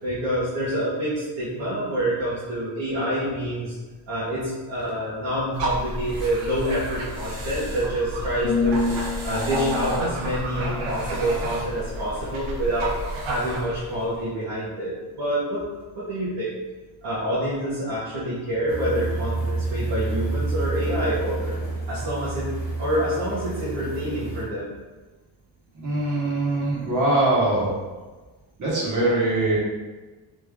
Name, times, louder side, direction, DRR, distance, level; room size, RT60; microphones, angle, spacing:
voice 1, 0.0-3.8 4.1-8.9 9.2-12.9 13.2-15.6 15.9-16.5 17.0-21.6 21.9-22.5 22.8-24.7, equal, 60° right, -9 dB, 1.1 m, -27 dB
sound 1, 5.5-14.2, right 1 dB, 80° right, 0.9 m, -31 dB
sound 2, 8.4-12.3 12.8-13.1, left 4 dB, 45° left, 0.6 m, -30 dB
sound 3, 18.7-24.4, right 3 dB, 20° left, 1.0 m, -29 dB
voice 2, 25.7-27.7 28.6-29.6, right 2 dB, 40° right, -6 dB, 1.2 m, -22 dB
3.3 x 2.6 x 3.4 m, 1.3 s
cardioid pair, 160°, 46 cm